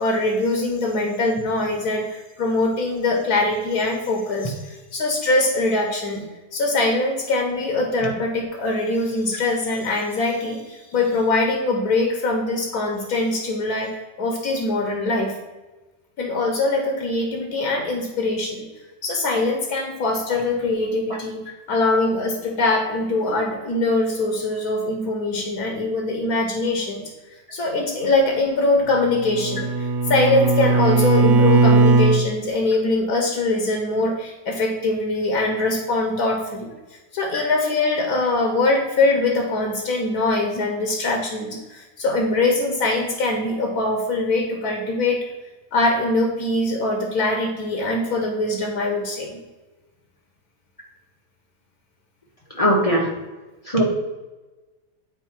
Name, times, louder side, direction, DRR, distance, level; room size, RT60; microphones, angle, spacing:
voice 1, 0.0-6.2 6.5-15.4 16.2-18.6 19.0-21.4 21.7-27.0 27.5-36.7 37.1-45.2 45.7-49.4, left 2 dB, 65° left, 3 dB, 1.6 m, -22 dB
Bowed string instrument, 28.9-32.3, right 3 dB, 75° right, 1.2 m, -18 dB
voice 2, 52.6-53.1 53.7-53.8, equal, 25° left, -1 dB, 0.9 m, -19 dB
9.2 x 4.6 x 4.5 m, 1.2 s
omnidirectional pair, 1.8 m